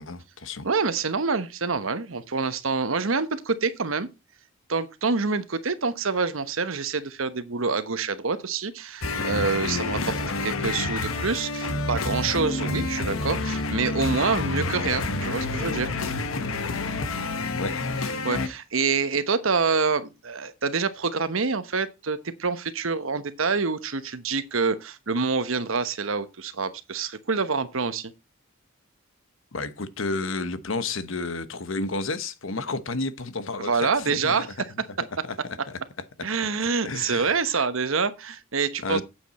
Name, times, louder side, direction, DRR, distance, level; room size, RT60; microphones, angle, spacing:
voice 1, 0.0-0.7 17.5-17.7 29.5-34.5 35.2-35.3 35.7-35.8 36.8-37.6 38.8-39.0, left 3 dB, 70° left, 1.1 m, -31 dB
voice 2, 0.6-4.1 4.7-15.9 18.2-28.1 33.6-34.5 35.2-35.3 36.2-39.0, right 4 dB, 75° right, 1.1 m, -26 dB
sound 1, 9.0-18.5, left 3 dB, 90° left, 1.2 m, -28 dB
9.0 x 7.6 x 4.2 m
head